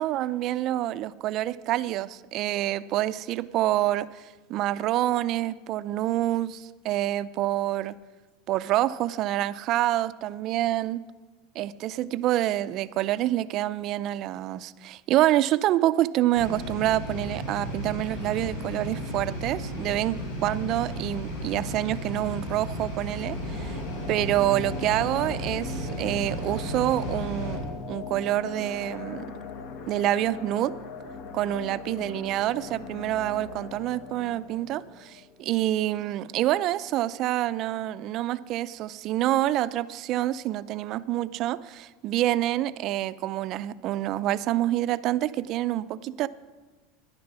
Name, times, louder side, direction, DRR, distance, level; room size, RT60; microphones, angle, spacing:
voice 1, 0.0-4.1 4.5-8.0 8.5-11.0 11.6-23.8 24.1-27.6 27.9-29.3 29.9-30.7 31.3-46.3, right 14 dB, 45° right, 14 dB, 0.4 m, -27 dB
sound 1, 16.4-27.5, equal, 85° left, 4.4 m, -34 dB
sound 2, 23.0-36.1 36.4-36.5, left 5 dB, 55° left, 1.0 m, -40 dB
13.5 x 10.5 x 6.1 m, 1.3 s
supercardioid pair, 145°, 0 cm